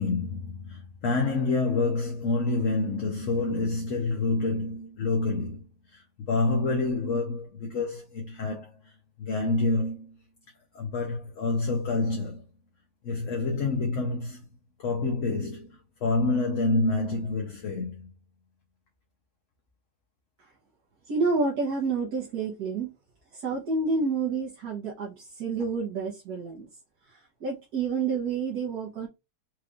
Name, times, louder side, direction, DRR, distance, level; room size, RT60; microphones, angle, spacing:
voice 1, 0.0-8.9 9.2-10.2 10.7-12.4 13.0-14.4 14.8-18.1, left 3 dB, 55° left, 1.1 m, -28 dB
voice 2, 21.1-22.9 23.3-26.7 27.0-29.1, right 4 dB, 65° right, 1.6 m, -29 dB
4.7 x 3.3 x 2.5 m
omnidirectional pair, 1.8 m